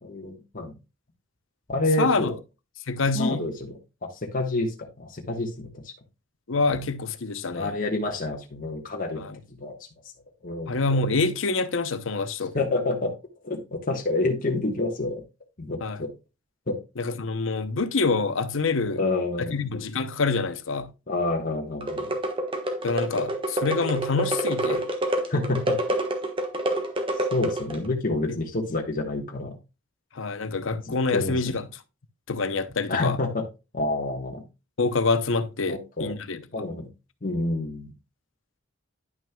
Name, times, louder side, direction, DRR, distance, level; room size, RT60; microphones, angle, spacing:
voice 1, 0.0-0.7 1.7-2.3 3.1-3.7 4.0-5.9 6.7-6.8 7.5-9.2 9.6-9.7 10.4-10.8 12.4-13.1 13.4-15.2 15.6-16.1 16.7-16.8 19.0-19.6 21.1-22.1 25.3-25.8 27.3-29.6 30.9-31.5 32.9-33.4 33.7-34.4 35.7-36.2 36.5-36.9 37.2-37.9, left 2 dB, 45° left, 1.2 m, -28 dB
voice 2, 2.0-2.3 2.9-3.4 6.5-7.7 9.2-9.4 10.7-12.5 15.8-16.1 17.0-19.0 19.4-20.9 22.8-24.8 30.1-31.7 32.3-33.2 34.8-36.4, left 3 dB, 70° left, 0.8 m, -26 dB
sound 1, 21.8-27.9, right 1 dB, 25° right, 1.3 m, -28 dB
10.5 x 6.1 x 2.3 m
head